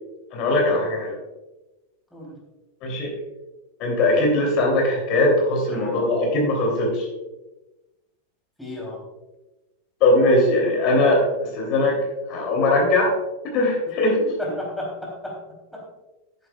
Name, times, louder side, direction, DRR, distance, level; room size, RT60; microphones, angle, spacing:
voice 1, 0.3-1.2 2.8-3.1 3.8-7.1 10.0-11.2 11.5-12.0 12.3-13.1 13.5-14.3, left 2 dB, 40° left, -1 dB, 3.0 m, -20 dB
voice 2, 8.6-9.0 14.4-15.4 15.7-15.8, left 1 dB, 5° left, -3 dB, 3.2 m, -33 dB
12.5 x 9.7 x 2.3 m, 1.0 s
figure-of-eight pair, 90°, 0 cm